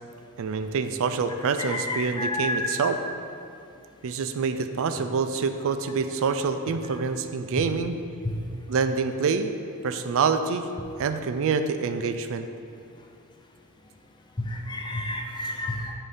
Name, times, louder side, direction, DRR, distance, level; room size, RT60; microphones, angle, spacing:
voice 1, 0.4-3.0 4.0-7.9 8.7-9.5 9.8-10.7 11.0-12.5, right 5 dB, 65° right, 9 dB, 0.4 m, -26 dB
voice 2, 1.9-2.7 8.3-8.4 14.4-15.9, left 1 dB, 20° left, 2 dB, 0.5 m, -30 dB
8.2 x 2.7 x 5.5 m, 2.5 s
head